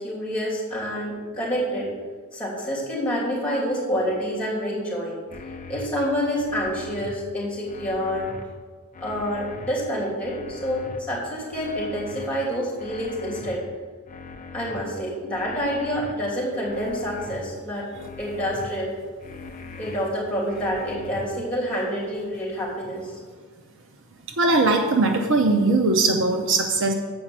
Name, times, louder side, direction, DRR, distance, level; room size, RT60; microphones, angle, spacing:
voice 1, 0.0-1.9 2.3-5.2 5.7-8.3 9.0-13.7 14.5-17.9 18.2-18.9 19.8-23.1, equal, 5° left, -5 dB, 2.8 m, -27 dB
sound 1, 5.3-5.9 6.4-7.2 7.7-8.4 8.9-9.7 10.2-11.0 11.5-12.3 12.8-13.6 14.1-14.8 15.3-16.1 16.6-17.4 17.9-18.7 19.2-20.0 20.5-21.3, left 4 dB, 35° left, 0.6 m, -40 dB
voice 2, 24.4-26.9, right 3 dB, 55° right, 4 dB, 0.7 m, -20 dB
7.8 x 5.0 x 7.2 m, 1.5 s
head